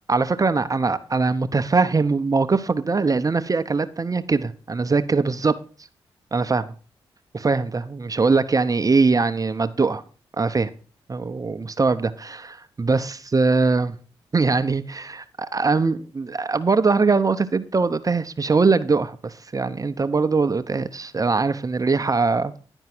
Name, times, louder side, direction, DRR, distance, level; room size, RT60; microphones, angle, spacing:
voice 1, 0.1-5.6 6.3-6.7 7.3-10.0 10.4-10.7 11.1-14.0 14.3-22.5, right 4 dB, 35° right, 0.7 m, -22 dB
11.0 x 4.5 x 6.0 m
supercardioid pair, 50°, 10 cm